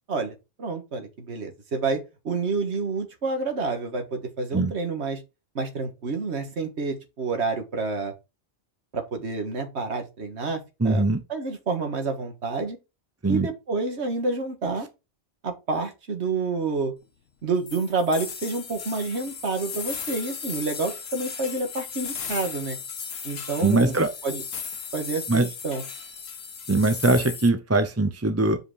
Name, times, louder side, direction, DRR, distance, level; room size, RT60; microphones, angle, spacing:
voice 1, 0.1-5.2 5.6-8.1 8.9-10.6 10.8-12.8 13.3-14.9 15.4-16.9 17.4-22.8 23.2-23.9 24.2-24.4 24.9-25.8, right 3 dB, 60° right, 1.8 m, -28 dB
voice 2, 10.8-11.2 13.2-13.5 23.6-24.1 25.3-25.5 26.7-28.6, right 2 dB, 15° right, 0.5 m, -21 dB
sound 1, 17.7-27.5, left 6 dB, 85° left, 1.6 m, -36 dB
7.8 x 5.0 x 4.9 m
omnidirectional pair, 1.3 m